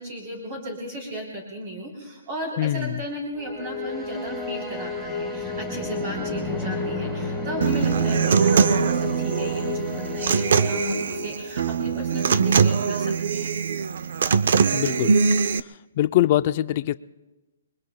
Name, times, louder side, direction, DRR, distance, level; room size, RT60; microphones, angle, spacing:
voice 1, 0.0-13.5, right 1 dB, 35° right, -1 dB, 3.4 m, -35 dB
voice 2, 2.6-3.0 14.7-15.2 16.0-16.9, left 13 dB, 35° left, 14 dB, 0.4 m, -23 dB
sound 1, 3.3-11.8, left 3 dB, 5° right, 4.1 m, -31 dB
Human voice / Acoustic guitar, 7.6-15.6, right 6 dB, 60° right, 0.5 m, -22 dB
29.5 x 22.0 x 2.2 m, 1.1 s
hypercardioid pair, 160°, 0 cm